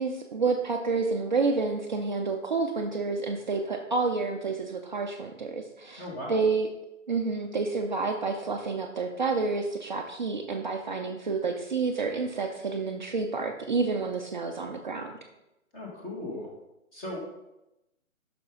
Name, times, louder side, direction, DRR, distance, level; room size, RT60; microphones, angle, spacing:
voice 1, 0.0-6.0 6.3-6.7 7.1-15.1, right 4 dB, 35° right, 2 dB, 0.6 m, -29 dB
voice 2, 6.0-6.4 15.7-16.5 16.9-17.2, left 1 dB, 15° left, -3 dB, 1.8 m, -37 dB
10.0 x 6.0 x 3.8 m, 0.92 s
hypercardioid pair, 160°, 40 cm